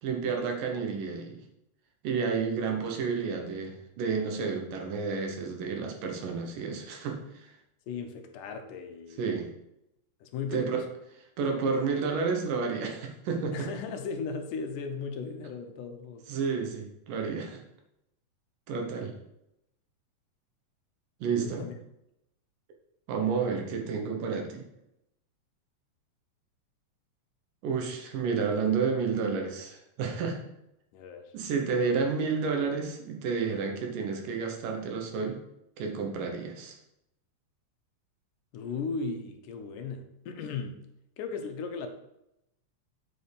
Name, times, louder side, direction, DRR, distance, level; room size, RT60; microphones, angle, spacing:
voice 1, 0.0-1.4 2.0-7.5 9.2-9.5 10.5-10.8 11.4-13.7 16.3-17.6 18.7-19.1 21.2-21.6 23.1-24.7 27.6-30.4 31.3-35.4 35.8-36.8, right 5 dB, 85° right, 3 dB, 2.8 m, -30 dB
voice 2, 7.9-9.4 10.2-10.8 13.5-16.3 21.4-21.7 30.9-31.3 38.5-40.8 41.2-41.9, left 5 dB, 80° left, 6 dB, 2.3 m, -36 dB
7.5 x 4.2 x 5.2 m, 0.84 s
omnidirectional pair, 3.7 m